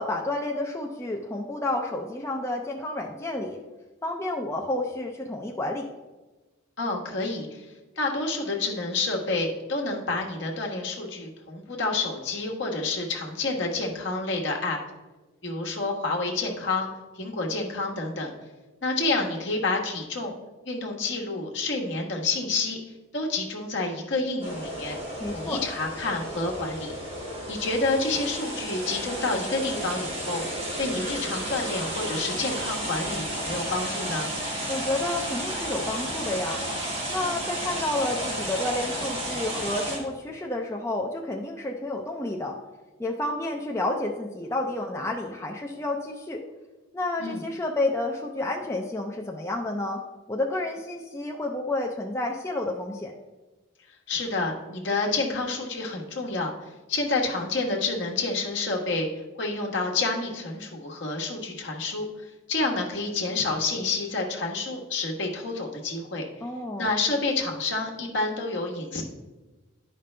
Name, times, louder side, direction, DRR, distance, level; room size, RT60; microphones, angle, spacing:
voice 1, 0.0-3.6 4.0-5.9 25.2-25.6 34.7-36.6 37.1-42.6 43.0-46.4 46.9-50.0 50.3-53.1 66.4-66.9, left 2 dB, 15° left, 0 dB, 0.5 m, -30 dB
voice 2, 6.8-7.6 8.0-14.8 15.4-16.9 17.1-18.3 18.8-20.4 20.6-22.8 23.1-25.0 25.3-26.9 27.5-30.4 30.8-34.3 47.2-47.4 54.1-56.5 56.9-59.1 59.4-66.2 66.8-69.0, left 3 dB, 60° left, 0 dB, 1.3 m, -29 dB
sound 1, 24.4-40.0, right 1 dB, 30° right, 2.2 m, -32 dB
11.0 x 5.2 x 3.3 m, 1.2 s
head